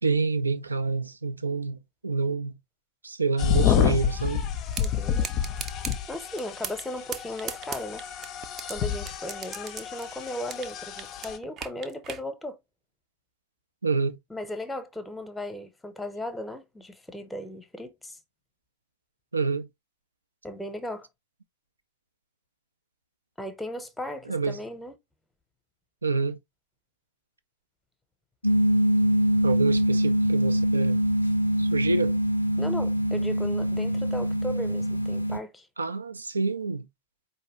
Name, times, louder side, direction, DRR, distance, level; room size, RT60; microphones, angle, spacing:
voice 1, 0.0-2.6 3.0-4.5 13.8-14.2 19.3-19.7 24.3-24.6 26.0-26.4 29.4-31.0 31.6-32.2 35.8-36.9, right 4 dB, 80° right, 0.5 m, -27 dB
sound 1, 3.4-11.4, left 9 dB, 35° left, 0.5 m, -29 dB
sound 2, 4.7-4.9 5.2-6.0 6.4-6.9 7.1-8.7 9.1-10.7 11.0-12.2, right 8 dB, 30° right, 0.6 m, -36 dB
voice 2, 4.8-5.3 6.1-8.0 8.7-12.6 14.3-18.2 20.4-21.1 23.4-24.9 32.6-35.7, left 1 dB, 5° left, 0.8 m, -36 dB
sound 3, 28.4-35.4, equal, 85° left, 0.4 m, -24 dB
4.6 x 2.7 x 3.0 m
figure-of-eight pair, 90°, 0 cm